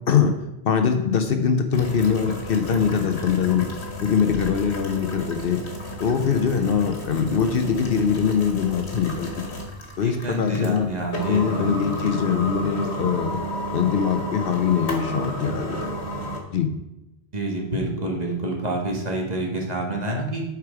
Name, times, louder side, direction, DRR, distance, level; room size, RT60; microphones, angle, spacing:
voice 1, 0.6-3.7 4.0-5.6 6.0-9.6 10.0-10.9 11.3-13.4 13.7-16.0 16.5-16.7, left 7 dB, 60° left, 7 dB, 0.9 m, -22 dB
sound 1, 1.7-16.4, equal, 80° left, 1.7 m, -32 dB
voice 2, 10.0-11.7 17.3-20.4, right 1 dB, 40° right, 0 dB, 1.5 m, -28 dB
8.3 x 4.8 x 4.8 m, 0.92 s
omnidirectional pair, 1.1 m